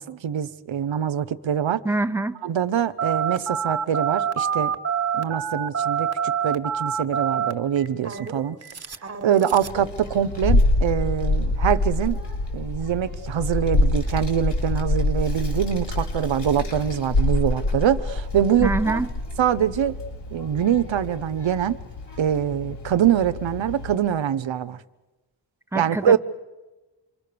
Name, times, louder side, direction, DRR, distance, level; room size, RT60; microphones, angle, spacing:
voice 1, 0.0-1.8 2.4-4.8 5.1-8.6 9.2-12.2 12.5-19.0 19.4-20.0 20.3-21.8 22.2-24.8 25.7-26.2, right 9 dB, 85° right, 12 dB, 1.0 m, -24 dB
voice 2, 1.8-2.4 18.6-19.1 25.7-26.2, right 2 dB, 5° right, 7 dB, 1.1 m, -24 dB
Telephone, 3.0-9.8, right 7 dB, 35° right, 1.5 m, -26 dB
Child speech kid speaking, 9.5-23.9, left 2 dB, 70° left, 7.5 m, -26 dB
28.0 x 23.5 x 6.8 m, 1.1 s
wide cardioid pair, 155°, 44 cm